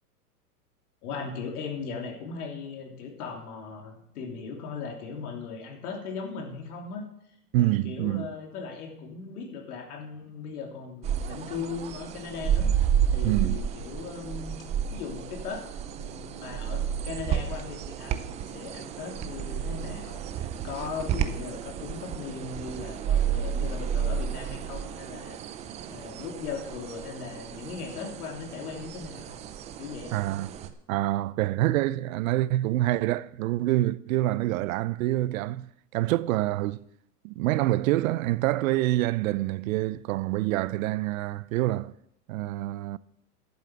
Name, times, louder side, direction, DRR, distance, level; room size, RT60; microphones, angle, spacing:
voice 1, 1.0-7.0 7.6-12.7 13.1-14.6 14.9-25.4 25.9-29.4 29.8-30.1, left 5 dB, 65° left, 3.2 m, -38 dB
voice 2, 7.5-8.3 13.2-13.6 30.1-36.8 37.2-41.9 42.3-43.0, right 16 dB, 55° right, 0.6 m, -26 dB
sound 1, 11.0-30.7, right 8 dB, 15° right, 0.4 m, -31 dB
11.0 x 8.2 x 5.8 m
hypercardioid pair, 120°, 48 cm